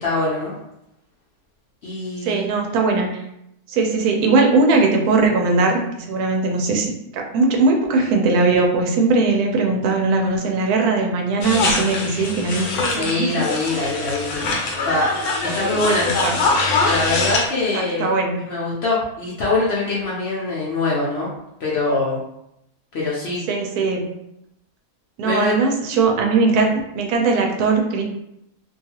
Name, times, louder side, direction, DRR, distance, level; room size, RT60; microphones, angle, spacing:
voice 1, 0.0-0.5 1.8-2.5 12.8-14.5 14.8-16.1 16.8-18.1 18.5-21.3 21.6-22.2 22.9-23.4 25.2-25.5, left 2 dB, 60° left, -6 dB, 0.7 m, -23 dB
voice 2, 2.2-3.2 3.7-6.9 7.1-13.3 13.7-14.0 15.9-16.4 17.7-18.5 23.5-24.1 25.2-28.0, right 3 dB, 80° right, 1 dB, 1.1 m, -19 dB
sound 1, 11.4-17.5, left 3 dB, 75° left, 1.1 m, -23 dB
2.7 x 2.3 x 2.8 m, 0.82 s
omnidirectional pair, 1.6 m